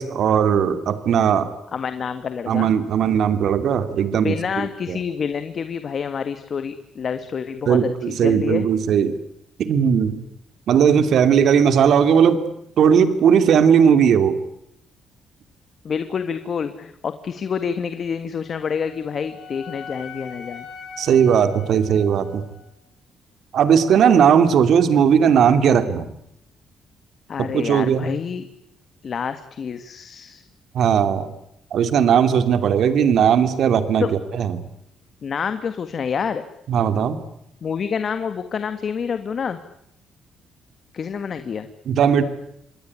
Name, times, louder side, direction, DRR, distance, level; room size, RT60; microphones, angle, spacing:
voice 1, 0.0-1.5 2.5-5.0 7.7-9.2 9.6-10.2 10.7-12.4 12.8-14.4 21.0-22.4 23.5-26.1 27.4-28.1 30.7-31.3 31.7-34.1 34.3-34.6 36.7-37.2 41.9-42.2, right 7 dB, 70° right, 11 dB, 2.8 m, -17 dB
voice 2, 1.7-2.7 4.1-8.7 15.8-20.7 27.3-28.5 29.0-30.4 34.0-34.1 35.2-36.4 37.6-39.6 40.9-41.7, left 6 dB, 50° left, 10 dB, 1.8 m, -27 dB
Wind instrument woodwind instrument, 18.5-22.7, left 6 dB, 85° left, 7.6 m, -41 dB
27.0 x 20.5 x 9.8 m, 0.79 s
cardioid pair, 90°, 0 cm